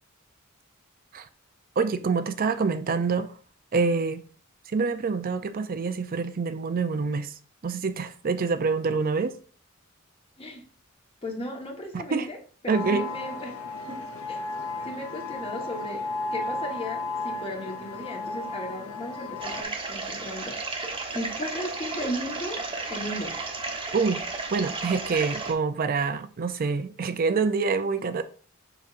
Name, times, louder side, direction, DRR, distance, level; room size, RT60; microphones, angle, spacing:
voice 1, 1.8-3.4 3.7-4.2 4.7-9.4 11.9-12.3 12.7-13.1 23.9-24.2 24.5-28.2, right 4 dB, 45° right, 0.4 m, -26 dB
voice 2, 11.2-12.4 12.6-13.5 13.9-14.0 14.3-14.5 14.8-16.0 16.3-23.4, left 1 dB, 25° left, 1.3 m, -36 dB
sound 1, 12.7-19.6, left 3 dB, 85° left, 0.8 m, -34 dB
sound 2, 19.4-25.5, right 3 dB, 25° right, 1.0 m, -33 dB
7.0 x 5.9 x 2.5 m
head